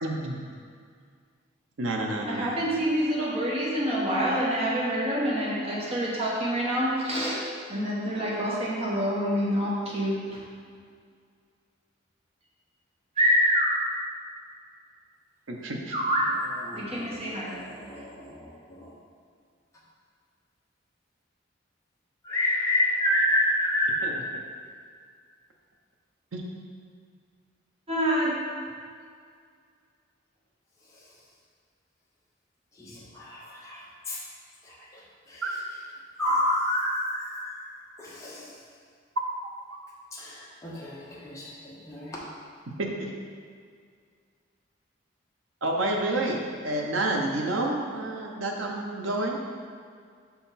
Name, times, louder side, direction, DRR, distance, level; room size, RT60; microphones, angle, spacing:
voice 1, 0.0-0.5 1.8-2.6 15.5-15.9 24.0-24.1 26.3-26.5 35.4-35.5 39.7-39.8 42.8-43.1 45.6-49.4, right 2 dB, 85° right, 1 dB, 0.8 m, -29 dB
voice 2, 2.3-10.4 13.2-13.9 15.9-16.4 16.7-17.6 27.9-28.4, equal, 30° right, -5 dB, 1.1 m, -26 dB
voice 3, 16.6-18.9 22.2-24.1 32.8-34.2 34.6-35.0 35.3-35.4 36.2-37.7 38.0-38.5 40.1-42.2, left 1 dB, 15° left, -6 dB, 1.0 m, -29 dB
5.6 x 4.1 x 4.1 m, 2.1 s
head